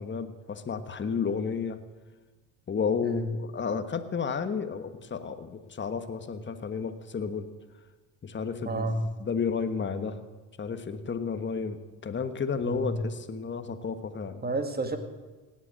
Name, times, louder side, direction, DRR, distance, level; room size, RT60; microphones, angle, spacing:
voice 1, 0.0-1.8 2.7-7.5 8.2-10.2 10.6-14.4, left 5 dB, 30° left, 9 dB, 1.4 m, -32 dB
voice 2, 8.6-9.0 12.6-13.0 14.4-15.0, right 2 dB, 25° right, 7 dB, 2.0 m, -30 dB
18.0 x 8.2 x 7.7 m, 1.3 s
supercardioid pair, 75°, 39 cm